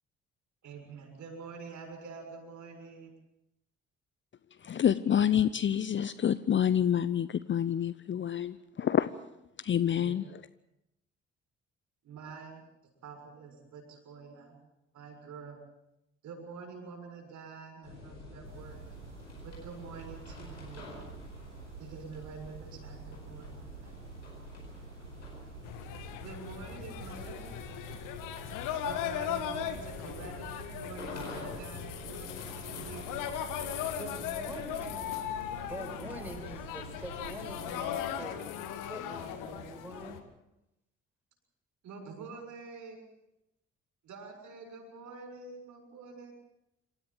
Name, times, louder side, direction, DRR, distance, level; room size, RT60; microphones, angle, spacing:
voice 1, 0.6-3.1 10.0-10.2 12.0-12.6 13.0-14.6 14.9-15.6 16.2-18.8 19.4-21.0 21.8-23.9 26.2-27.6 28.8-33.2 41.8-43.1 44.0-46.3, right 4 dB, 55° right, 3 dB, 6.8 m, -47 dB
voice 2, 4.6-9.1 9.6-10.2, left 9 dB, 35° left, 15 dB, 0.8 m, -27 dB
sound 1, 17.8-37.8, left 3 dB, 85° left, 4.9 m, -50 dB
sound 2, 18.4-38.0, right 6 dB, 85° right, 1.2 m, -49 dB
sound 3, 25.6-40.2, left 9 dB, 60° left, 2.0 m, -38 dB
voice 3, 34.0-38.5 38.9-40.2, equal, 5° right, 3 dB, 7.0 m, -45 dB
27.0 x 14.0 x 8.9 m, 0.87 s
figure-of-eight pair, 45°, 35 cm